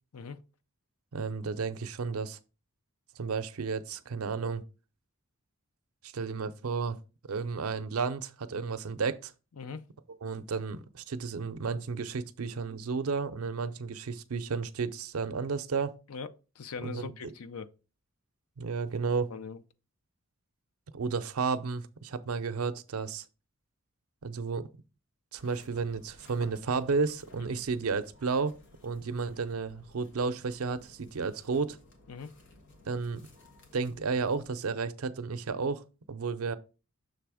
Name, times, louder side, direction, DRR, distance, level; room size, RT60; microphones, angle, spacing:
voice 1, 1.1-2.4 3.2-4.6 6.0-7.0 7.3-9.3 10.2-15.9 16.8-17.3 18.6-19.3 20.9-23.2 24.2-24.7 25.3-28.6 28.8-31.8 32.9-33.3 33.7-36.5, right 4 dB, 85° right, 0.5 m, -32 dB
voice 2, 16.1-17.7 19.3-19.6 27.4-27.5 32.1-32.3, left 5 dB, 85° left, 0.6 m, -41 dB
sound 1, 25.4-34.5, left 2 dB, 55° left, 1.3 m, -57 dB
6.5 x 3.4 x 4.8 m
head